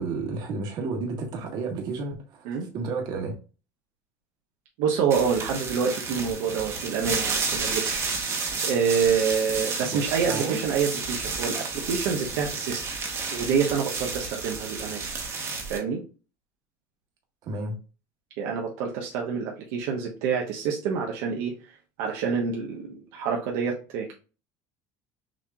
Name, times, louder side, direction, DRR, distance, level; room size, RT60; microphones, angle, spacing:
voice 1, 0.0-2.5 2.7-3.4 9.9-10.6 17.4-17.8, right 3 dB, 50° right, 2 dB, 1.6 m, -31 dB
voice 2, 4.8-8.0 8.6-12.8 13.3-15.1 15.7-16.0 18.4-21.5 22.0-24.1, right 6 dB, 80° right, -1 dB, 1.1 m, -27 dB
sound 1, 5.1-15.8, right 4 dB, 30° right, 1.3 m, -31 dB
6.4 x 3.0 x 2.4 m, 0.34 s
cardioid pair, 130°, 9 cm